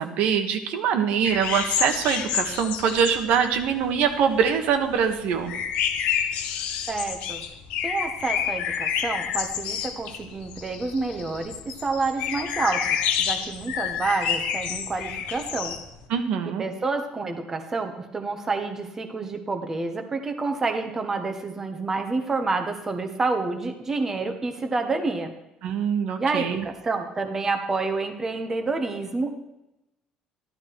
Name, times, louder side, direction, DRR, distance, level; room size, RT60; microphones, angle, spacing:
voice 1, 0.0-5.5 16.1-16.6 25.6-26.7, right 7 dB, 70° right, 6 dB, 1.5 m, -23 dB
sound 1, 1.2-4.5 4.7-16.0, left 8 dB, 80° left, 1.8 m, -29 dB
voice 2, 6.9-7.4 7.8-12.8 13.2-15.8 16.6-25.3 26.2-29.4, right 3 dB, 20° right, 5 dB, 1.2 m, -28 dB
14.0 x 12.0 x 4.7 m, 0.91 s
cardioid pair, 170°, 2 cm